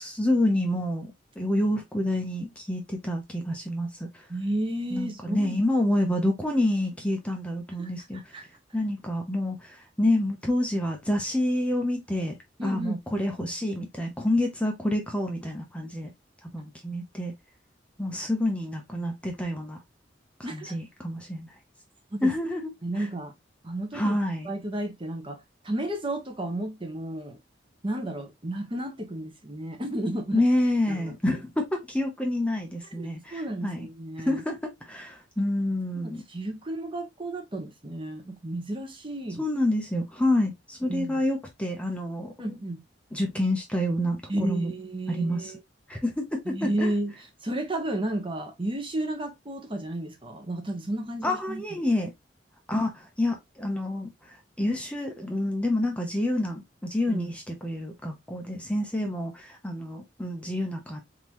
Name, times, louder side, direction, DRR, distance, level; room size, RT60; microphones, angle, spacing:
voice 1, 0.0-4.3 4.9-8.5 8.7-12.4 12.6-16.1 16.5-17.3 18.0-19.8 20.5-21.5 22.2-23.1 23.9-24.5 30.3-33.9 34.3-36.2 39.4-42.5 43.1-44.7 45.1-45.5 45.9-46.9 51.2-52.1 52.7-61.0, left 1 dB, 5° left, 0.9 m, -28 dB
voice 2, 4.3-5.6 7.8-8.4 12.6-13.0 20.4-20.8 22.2-22.3 22.8-23.3 23.6-24.2 24.4-27.4 27.8-30.4 30.9-31.1 33.0-34.4 36.0-39.5 40.9-41.2 42.4-42.8 44.3-45.6 46.5-47.1 47.4-51.8 57.1-57.3, right 1 dB, 30° right, 1.1 m, -32 dB
3.8 x 3.8 x 3.0 m
head